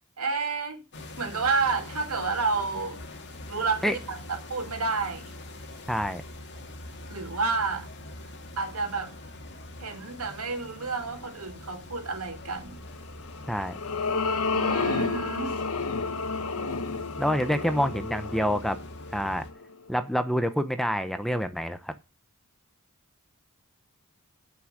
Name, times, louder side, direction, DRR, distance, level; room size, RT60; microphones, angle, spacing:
voice 1, 0.2-0.8 1.2-3.0 3.5-4.2 4.5-5.2 7.1-7.9 8.6-9.1 9.8-12.8 14.5-15.6, right 4 dB, 75° right, 2.8 m, -30 dB
sound 1, 0.9-19.5, left 1 dB, 55° left, 2.3 m, -43 dB
voice 2, 5.9-6.2 13.5-13.7 17.2-18.8 19.1-19.5 19.9-21.9, equal, ahead, 0.8 m, -27 dB
sound 2, 13.2-19.7, left 4 dB, 85° left, 1.2 m, -31 dB
9.4 x 6.4 x 7.4 m
head